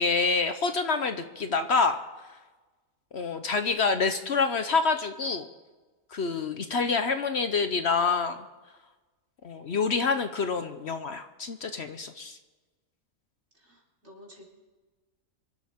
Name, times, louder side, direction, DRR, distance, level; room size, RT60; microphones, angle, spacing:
voice 1, 0.0-2.0 3.1-5.4 6.1-8.4 9.4-12.4, left 4 dB, 55° left, 8 dB, 1.0 m, -27 dB
voice 2, 13.5-14.4, left 1 dB, 50° right, -2 dB, 4.1 m, -52 dB
25.5 x 12.0 x 3.6 m, 1.3 s
omnidirectional pair, 1.4 m